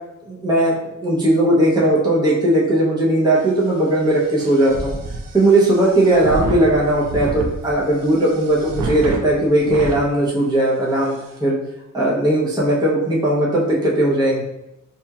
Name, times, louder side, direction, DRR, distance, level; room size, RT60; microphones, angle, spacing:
voice 1, 0.3-5.0 5.3-11.5 11.9-14.4, right 1 dB, 10° right, -6 dB, 0.7 m, -18 dB
sound 1, 3.4-10.0 10.6-10.7 10.9-11.4, right 2 dB, 80° right, 0.6 m, -30 dB
4.2 x 2.8 x 2.3 m, 0.90 s
wide cardioid pair, 135°, 33 cm